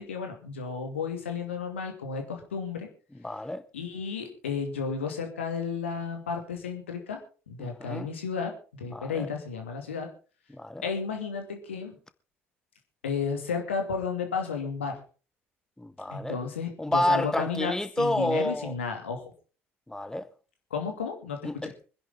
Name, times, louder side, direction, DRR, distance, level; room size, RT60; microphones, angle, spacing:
voice 1, 0.0-2.9 3.7-7.2 7.5-10.1 10.8-12.0 13.0-15.0 16.1-19.2 20.7-21.7, left 5 dB, 80° left, 2.5 m, -33 dB
voice 2, 3.2-3.6 7.6-8.1 8.9-9.3 10.5-10.8 15.8-16.4 16.8-18.7 19.9-20.3 21.4-21.7, left 1 dB, 10° left, 1.4 m, -29 dB
25.0 x 10.5 x 3.8 m
figure-of-eight pair, 55°, 7 cm